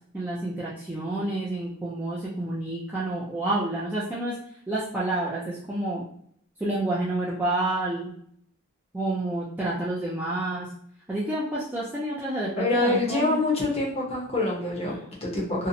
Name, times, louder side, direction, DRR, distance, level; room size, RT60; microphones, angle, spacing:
voice 1, 0.1-4.4 4.7-6.0 6.6-8.1 8.9-10.7 11.1-13.4, right 2 dB, 10° right, -7 dB, 0.3 m, -29 dB
voice 2, 12.6-15.7, left 2 dB, 25° left, -3 dB, 0.6 m, -26 dB
2.8 x 2.0 x 2.5 m, 0.66 s
head